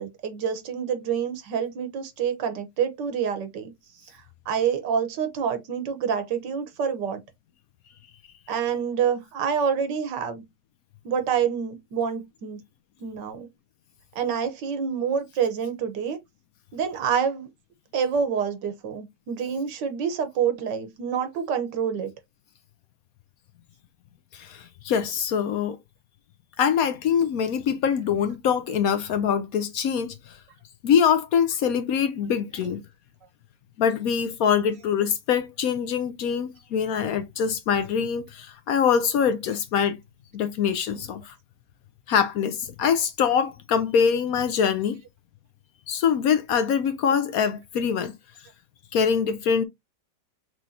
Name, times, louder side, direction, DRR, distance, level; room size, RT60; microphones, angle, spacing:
voice 1, 0.0-3.7 4.0-7.2 8.5-10.4 11.0-12.6 13.0-13.5 14.1-16.2 16.7-17.5 17.9-22.1, right 7 dB, 85° right, 1.7 m, -27 dB
voice 2, 24.3-25.8 26.6-30.4 30.8-32.8 33.8-40.0 40.3-41.3 42.1-45.0 45.9-48.1 48.9-49.6, left 7 dB, 65° left, 1.0 m, -24 dB
6.0 x 3.1 x 2.7 m
omnidirectional pair, 1.9 m